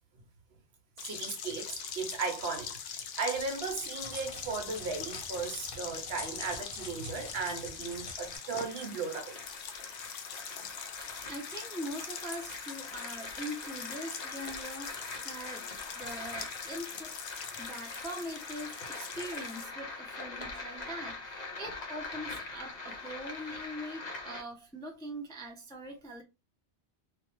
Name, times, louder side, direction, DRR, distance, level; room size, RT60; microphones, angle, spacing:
sound 1, 1.0-19.6, left 7 dB, 80° left, 0.9 m, -43 dB
voice 1, 1.0-9.4, right 4 dB, 65° right, 0.9 m, -36 dB
Crackle, 3.6-8.4, left 2 dB, 60° left, 1.1 m, -47 dB
sound 2, 7.1-24.4, left 3 dB, 40° left, 0.8 m, -43 dB
voice 2, 11.0-17.2 17.6-26.2, equal, 5° left, 0.4 m, -42 dB
2.5 x 2.4 x 3.0 m
omnidirectional pair, 1.2 m